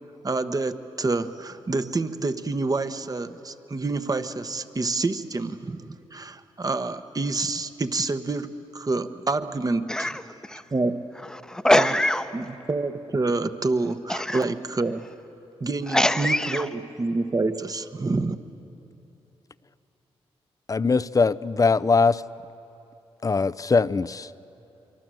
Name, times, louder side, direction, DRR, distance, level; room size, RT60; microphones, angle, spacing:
voice 1, 0.2-10.1 10.7-11.0 11.8-11.9 12.3-15.0 15.6-18.4, right 3 dB, 35° right, 1.2 m, -27 dB
voice 2, 9.9-10.6 11.2-12.3 14.1-14.5 15.9-16.7, left 1 dB, 5° left, 1.0 m, -23 dB
voice 3, 20.7-22.2 23.2-24.3, left 4 dB, 30° left, 0.6 m, -21 dB
25.0 x 24.0 x 7.7 m
cardioid pair, 60°, 11 cm